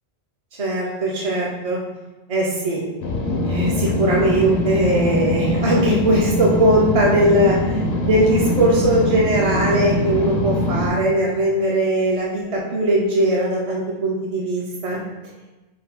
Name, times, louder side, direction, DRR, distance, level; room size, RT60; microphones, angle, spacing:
voice 1, 0.6-1.8 2.3-2.8 3.4-15.0, right 1 dB, 45° right, -3 dB, 0.5 m, -20 dB
sound 1, 3.0-10.9, left 1 dB, 70° left, 0.8 m, -22 dB
3.9 x 2.1 x 4.2 m, 1.1 s
omnidirectional pair, 1.1 m